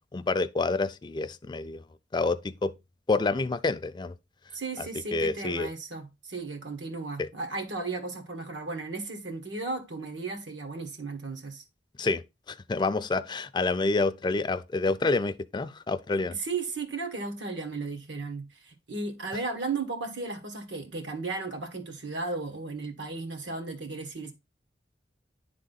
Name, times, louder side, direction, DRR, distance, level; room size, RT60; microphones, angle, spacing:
voice 1, 0.1-1.8 2.1-2.7 3.1-4.1 4.8-5.7 7.2-7.3 12.0-16.4, left 3 dB, 25° left, 0.4 m, -28 dB
voice 2, 4.5-11.6 16.1-24.3, right 3 dB, 85° right, 1.6 m, -35 dB
10.0 x 3.7 x 4.0 m
head